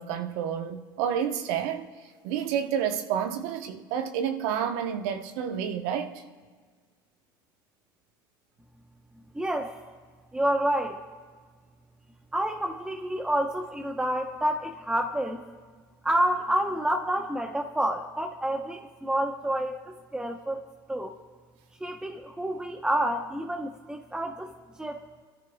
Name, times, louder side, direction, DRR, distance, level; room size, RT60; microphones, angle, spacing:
voice 1, 0.0-1.8 2.2-6.2, right 8 dB, 70° right, 1.0 m, -29 dB
voice 2, 9.3-9.8 10.3-11.0 12.3-15.4 16.0-20.6 20.9-21.2 21.8-24.5 24.8-25.0, right 1 dB, 5° right, 0.9 m, -28 dB
25.5 x 13.0 x 2.3 m
hypercardioid pair, 80°, 11 cm